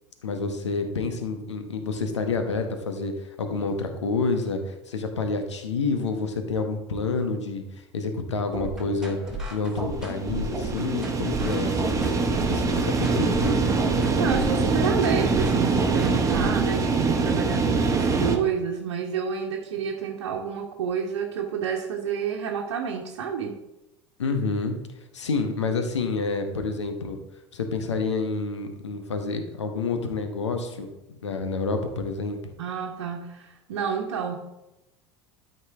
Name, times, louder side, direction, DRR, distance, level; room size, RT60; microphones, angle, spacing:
voice 1, 0.2-7.7 7.9-9.2 9.5-12.2 12.5-14.2 24.2-24.7 25.1-27.2 27.5-30.9 31.2-32.4, left 4 dB, 75° left, 7 dB, 1.2 m, -28 dB
sound 1, 8.5-16.5, right 1 dB, 5° right, 3.0 m, -34 dB
sound 2, 9.8-18.4, right 4 dB, 20° right, 1.3 m, -24 dB
voice 2, 14.1-23.6 32.6-34.4, right 7 dB, 65° right, -1 dB, 1.2 m, -29 dB
12.5 x 5.4 x 3.6 m, 0.94 s
figure-of-eight pair, 75°, 15 cm